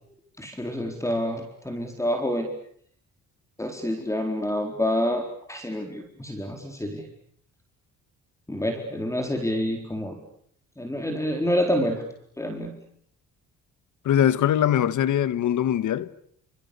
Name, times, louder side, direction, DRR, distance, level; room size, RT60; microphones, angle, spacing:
voice 1, 0.4-2.5 3.6-5.2 5.5-7.0 8.5-10.2 10.8-12.0 12.4-12.7, equal, 10° left, 4.3 m, -27 dB
voice 2, 14.0-16.1, left 10 dB, 70° left, 1.6 m, -22 dB
29.0 x 27.5 x 6.9 m
cardioid pair, 100°, 31 cm